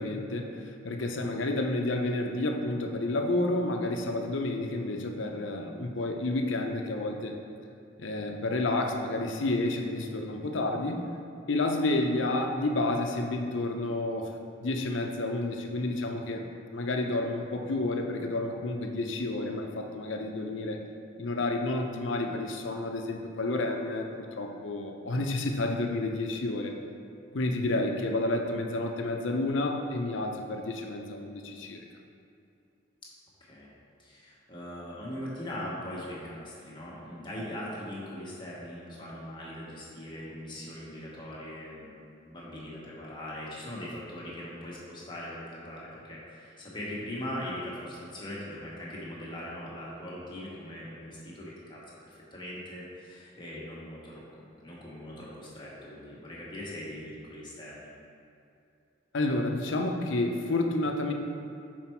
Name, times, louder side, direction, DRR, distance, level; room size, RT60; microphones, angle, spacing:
voice 1, 0.0-7.3 8.0-11.1 11.5-14.3 14.6-16.4 16.7-20.8 21.2-26.7 27.3-31.8 59.1-61.1, left 2 dB, 80° left, 3 dB, 0.6 m, -30 dB
voice 2, 33.4-33.7 34.0-57.9, left 1 dB, 25° left, -6 dB, 1.2 m, -41 dB
5.9 x 4.6 x 4.5 m, 2.6 s
head